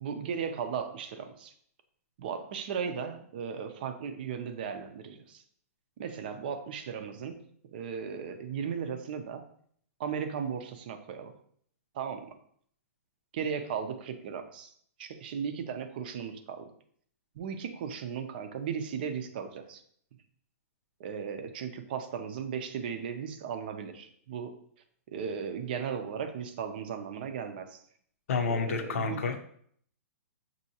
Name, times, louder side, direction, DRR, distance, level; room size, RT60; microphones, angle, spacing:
voice 1, 0.0-1.5 2.2-5.4 6.0-7.4 7.7-9.4 10.0-11.3 11.9-12.3 13.3-14.7 15.0-16.7 17.4-19.8 21.0-24.6 25.1-27.8 28.5-29.2, right 7 dB, 35° right, 7 dB, 0.4 m, -36 dB
voice 2, 28.3-29.4, left 5 dB, 60° left, 7 dB, 0.6 m, -29 dB
6.3 x 2.7 x 2.8 m, 0.62 s
hypercardioid pair, 170°, 8 cm